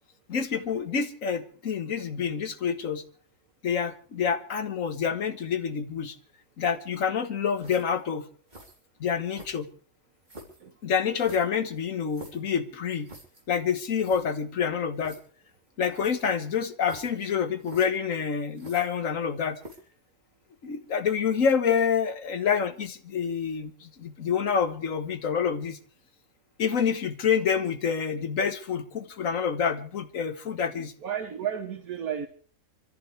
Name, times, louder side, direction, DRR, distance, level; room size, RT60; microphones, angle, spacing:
voice 1, 0.3-3.0 3.6-6.2 6.6-8.3 9.0-9.7 10.8-13.1 13.5-15.2 15.8-19.6 20.6-25.8 26.6-30.9, left 7 dB, 65° left, 1.6 m, -27 dB
sound 1, 7.6-8.0 8.5-8.8 9.3-9.8 10.3-10.6 11.2-12.5 13.0-13.4 13.7-13.8 14.0-14.3 15.0-15.2 15.9-16.3 16.8-17.3 17.6-17.9 18.5-19.2 19.6-19.9, right 1 dB, 30° right, 3.6 m, -47 dB
voice 2, 31.0-32.3, right 9 dB, 85° right, 1.5 m, -32 dB
25.5 x 14.0 x 3.4 m
omnidirectional pair, 1.5 m